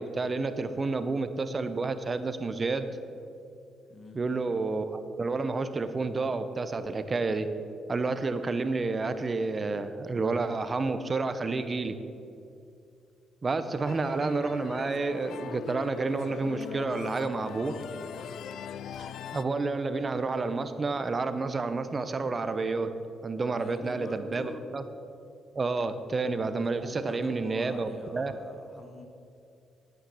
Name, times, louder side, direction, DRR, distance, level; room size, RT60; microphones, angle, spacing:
voice 1, 0.0-2.9 4.1-7.5 7.9-12.0 13.4-17.8 19.0-22.9 23.2-24.8 25.5-28.3, right 3 dB, 30° right, 10 dB, 0.7 m, -30 dB
sound 1, 13.8-19.4, left 8 dB, 70° left, 0.3 m, -41 dB
voice 2, 23.6-24.5 26.6-29.1, left 2 dB, 40° left, 4 dB, 1.4 m, -45 dB
9.4 x 9.0 x 5.6 m, 2.6 s
cardioid pair, 90°, 0 cm